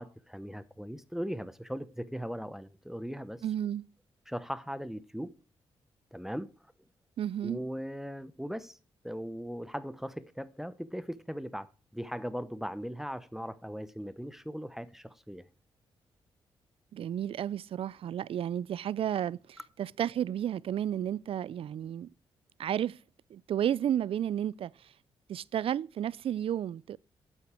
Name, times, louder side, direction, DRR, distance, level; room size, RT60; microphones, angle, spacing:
voice 1, 0.0-3.4 4.3-5.3 6.1-6.5 7.4-8.8 9.0-15.4, equal, 5° right, 0.7 m, -39 dB
voice 2, 3.4-3.9 7.2-7.6 16.9-22.1 22.6-23.0 23.3-24.9 25.3-27.0, right 10 dB, 60° right, 0.3 m, -32 dB
8.5 x 7.9 x 4.8 m
supercardioid pair, 60°, 11 cm